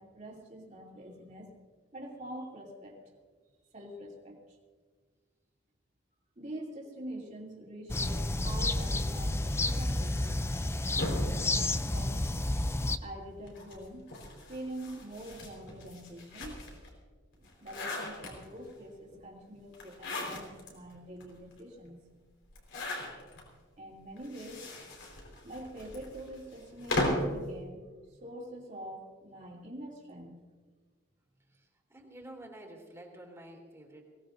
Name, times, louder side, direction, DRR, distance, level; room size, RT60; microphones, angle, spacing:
voice 1, 0.0-1.5 1.9-3.1 3.7-4.6 6.4-10.7 11.8-12.3 13.0-14.1 14.5-16.8 17.4-22.0 23.8-24.9 25.3-30.4, right 1 dB, 40° right, -1 dB, 2.9 m, -45 dB
sound 1, 7.9-13.0, left 2 dB, 15° left, 0.5 m, -30 dB
sound 2, 11.0-12.6 13.4-16.9 17.3-18.7 19.7-20.7 21.2-21.3 21.5-21.6 22.5-23.4 24.2-27.4, left 1 dB, 70° left, 4.4 m, -37 dB
voice 2, 31.5-34.0, right 1 dB, 15° right, 0 dB, 2.8 m, -50 dB
22.5 x 17.5 x 2.6 m, 1.5 s
head